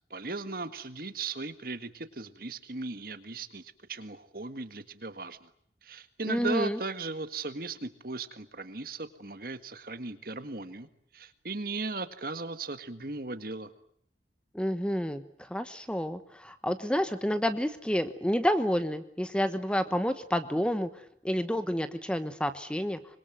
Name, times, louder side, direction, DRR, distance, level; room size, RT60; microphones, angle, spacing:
voice 1, 0.1-5.5 5.8-10.9 11.1-13.7, right 3 dB, 55° right, 10 dB, 1.8 m, -37 dB
voice 2, 6.3-6.8 14.5-23.0, equal, 5° left, 11 dB, 1.1 m, -29 dB
25.5 x 22.0 x 9.2 m, 0.66 s
head